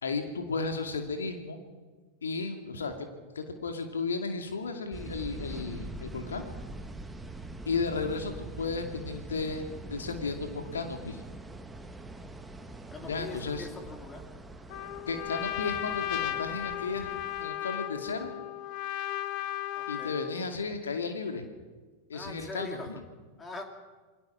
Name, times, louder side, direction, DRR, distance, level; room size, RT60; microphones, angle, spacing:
voice 1, 0.0-1.6 2.2-3.1 3.4-6.5 7.7-9.6 9.9-11.2 13.0-13.7 15.1-17.1 17.4-18.3 19.9-21.5 22.1-23.0, left 4 dB, 70° left, 6 dB, 2.4 m, -34 dB
sound 1, 4.9-17.5, right 2 dB, 10° right, 1.9 m, -44 dB
voice 2, 12.9-14.2 19.8-20.1 22.1-23.0 23.4-23.6, left 3 dB, 20° left, 5 dB, 2.7 m, -42 dB
Trumpet, 14.7-20.4, left 13 dB, 40° left, 1.7 m, -35 dB
28.5 x 21.5 x 5.9 m, 1.3 s
figure-of-eight pair, 90°, 0 cm